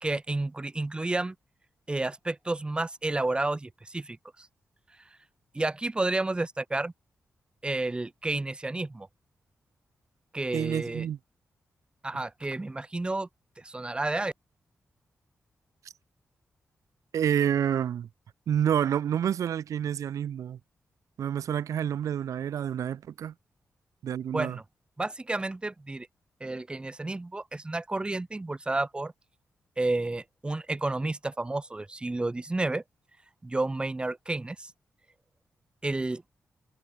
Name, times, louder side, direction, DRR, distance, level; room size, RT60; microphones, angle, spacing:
voice 1, 0.0-1.3 1.9-4.5 5.5-6.9 7.6-9.1 10.3-11.1 12.0-13.3 13.6-14.3 24.3-24.6 25.0-26.1 26.4-29.1 29.8-32.8 33.4-34.7 35.8-36.3, right 2 dB, 20° right, 0.5 m, -31 dB
voice 2, 10.5-11.2 17.1-18.1 18.5-20.6 21.2-23.3 24.0-24.6, right 9 dB, 85° right, 1.5 m, -28 dB
cardioid pair, 75°, 5 cm